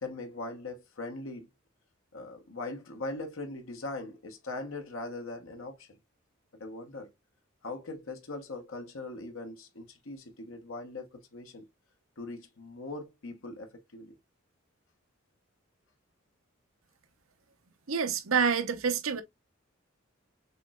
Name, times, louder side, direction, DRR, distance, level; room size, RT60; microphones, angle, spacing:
voice 1, 0.0-1.5 2.1-6.0 6.6-7.1 7.6-11.6 12.2-14.1, left 2 dB, 80° left, 1.1 m, -40 dB
voice 2, 17.9-19.2, right 6 dB, 80° right, 0.8 m, -27 dB
6.7 x 3.1 x 2.3 m
head